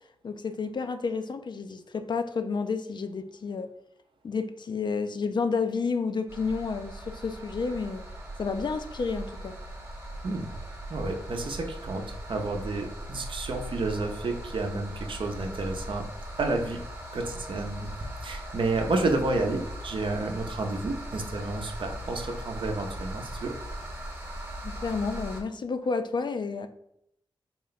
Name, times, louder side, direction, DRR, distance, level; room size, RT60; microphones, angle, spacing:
voice 1, 0.2-3.7 4.2-8.1 8.4-9.6 24.6-26.7, left 4 dB, 55° left, 0.4 m, -30 dB
sound 1, 6.3-25.4, right 1 dB, 25° right, 1.1 m, -39 dB
voice 2, 10.9-16.0 16.4-16.8 17.1-17.9 18.2-23.5, right 2 dB, 65° right, 0.7 m, -30 dB
3.8 x 2.2 x 3.9 m
cardioid pair, 65°, 9 cm